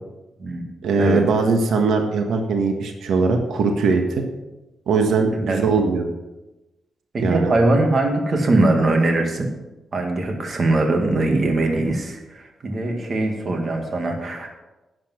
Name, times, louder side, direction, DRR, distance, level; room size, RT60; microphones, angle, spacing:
voice 1, 0.8-4.2 4.9-6.1 7.2-7.5, right 4 dB, 85° right, 4 dB, 1.4 m, -20 dB
voice 2, 7.1-9.5 9.9-14.5, right 2 dB, 35° right, 3 dB, 1.9 m, -21 dB
11.0 x 8.7 x 6.1 m, 1.1 s
wide cardioid pair, 175°, 0 cm